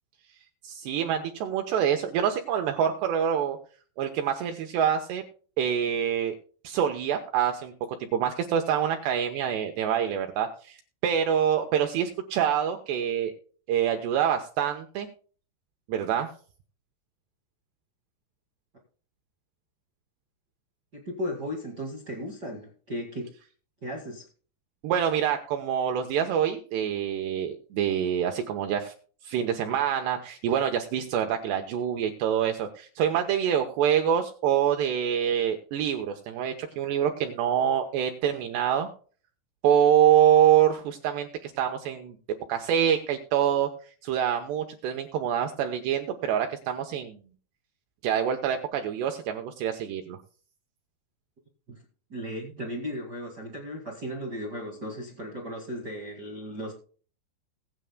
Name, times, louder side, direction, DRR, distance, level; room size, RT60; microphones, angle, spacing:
voice 1, 0.6-3.6 4.0-5.2 5.6-6.4 6.6-7.7 8.1-10.8 11.0-13.3 13.7-15.1 15.9-16.3 24.8-28.9 29.2-38.9 39.6-42.2 42.5-43.7 44.0-47.2 48.0-50.2, right 9 dB, 75° right, 5 dB, 2.9 m, -26 dB
voice 2, 20.9-23.3 23.8-24.2 51.7-51.8 52.1-56.7, equal, 55° right, 0 dB, 1.1 m, -36 dB
20.0 x 9.1 x 2.2 m, 0.41 s
omnidirectional pair, 5.2 m